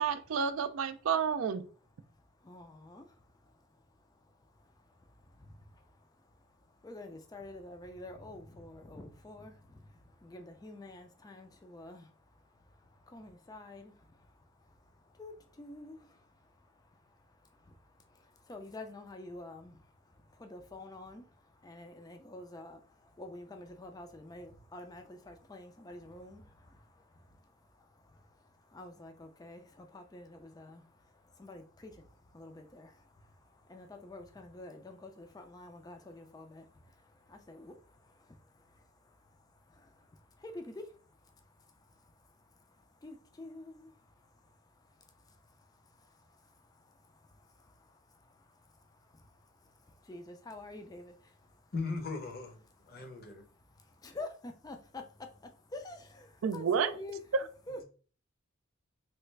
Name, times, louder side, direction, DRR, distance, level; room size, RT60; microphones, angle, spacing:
voice 1, 0.0-1.7 56.4-56.9 57.3-57.4, right 6 dB, 70° right, 0.4 m, -30 dB
voice 2, 2.1-51.7 52.9-53.0 53.5-57.2 57.7-57.8, left 2 dB, 20° left, 0.4 m, -50 dB
voice 3, 51.7-53.4 57.7-57.8, left 3 dB, 45° left, 0.7 m, -39 dB
3.2 x 2.4 x 3.1 m
head